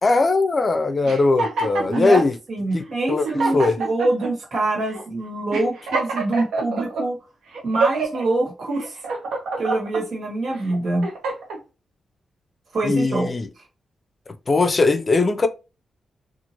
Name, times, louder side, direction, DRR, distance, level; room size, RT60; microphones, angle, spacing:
voice 1, 0.0-2.4 2.7-3.3 3.5-3.8 12.8-13.5 14.5-15.5, left 3 dB, 40° left, 0.4 m, -20 dB
sound 1, 1.0-2.3 2.9-3.0 3.2-4.3 4.9-5.0 5.5-7.0 7.5-8.2 8.8-10.0 10.6-11.6, right 3 dB, 90° right, 0.7 m, -26 dB
voice 2, 1.9-2.2 2.5-7.2 7.6-8.9 9.6-11.1 12.7-13.6, right 2 dB, 70° right, 1.4 m, -24 dB
2.8 x 2.4 x 2.9 m
cardioid pair, 60°, 0 cm